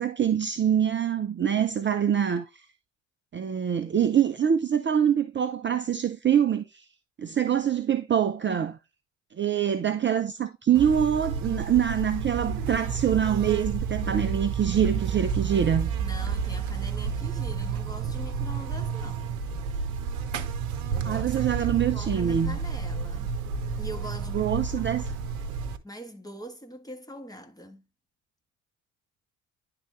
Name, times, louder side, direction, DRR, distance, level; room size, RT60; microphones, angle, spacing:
voice 1, 0.0-2.6 3.3-6.9 7.2-8.8 9.4-15.9 21.0-22.6 24.3-25.1, right 8 dB, 25° right, 0.7 m, -25 dB
Buzz, 10.7-25.8, right 6 dB, 80° right, 0.8 m, -30 dB
voice 2, 16.0-19.4 20.9-23.4 23.8-24.5 24.8-24.9 25.6-27.8, equal, 10° left, 1.6 m, -43 dB
10.5 x 3.9 x 3.2 m
hypercardioid pair, 55°, 42 cm